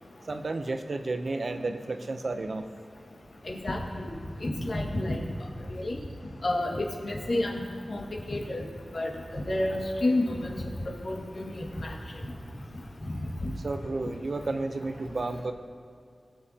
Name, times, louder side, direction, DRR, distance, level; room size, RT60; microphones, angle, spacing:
voice 1, 0.2-2.6 13.6-15.5, right 3 dB, 55° right, 8 dB, 0.7 m, -32 dB
voice 2, 3.5-4.1 4.4-5.2 5.8-6.0 6.4-7.6 7.9-8.7 8.9-10.6 11.0-11.2 11.5-11.9, left 1 dB, 60° left, -1 dB, 1.8 m, -30 dB
21.5 x 7.4 x 2.8 m, 2.4 s
wide cardioid pair, 110°, 0 cm